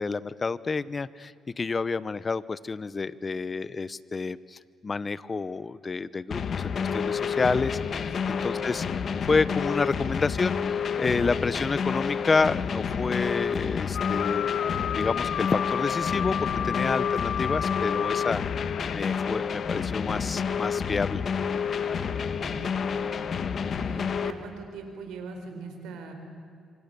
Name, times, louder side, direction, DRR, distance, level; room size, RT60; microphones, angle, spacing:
voice 1, 0.0-8.1 8.4-14.6 14.9-21.2, left 4 dB, 30° left, 18 dB, 0.8 m, -29 dB
sound 1, 6.3-24.3, left 6 dB, 55° left, 1.4 m, -29 dB
sound 2, 13.9-19.0, left 9 dB, 70° left, 0.5 m, -31 dB
voice 2, 22.4-23.1 23.6-26.1, right 4 dB, 90° right, 5 dB, 4.3 m, -42 dB
26.5 x 25.0 x 6.8 m, 2.4 s
cardioid pair, 90°, 0 cm